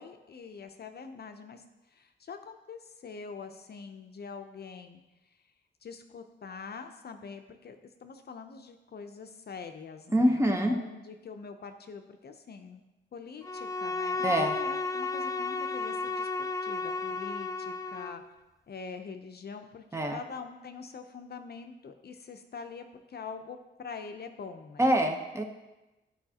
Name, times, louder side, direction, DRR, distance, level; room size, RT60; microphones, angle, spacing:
voice 1, 0.0-5.0 5.8-12.8 13.1-18.2 18.7-24.9, left 5 dB, 50° left, 7 dB, 0.6 m, -44 dB
voice 2, 10.1-10.7 14.2-14.5 19.9-20.2 24.8-25.4, equal, 15° right, 3 dB, 0.9 m, -25 dB
Bowed string instrument, 13.4-18.2, left 3 dB, 15° left, 0.4 m, -33 dB
14.0 x 4.8 x 2.9 m, 1.0 s
cardioid pair, 95°, 20 cm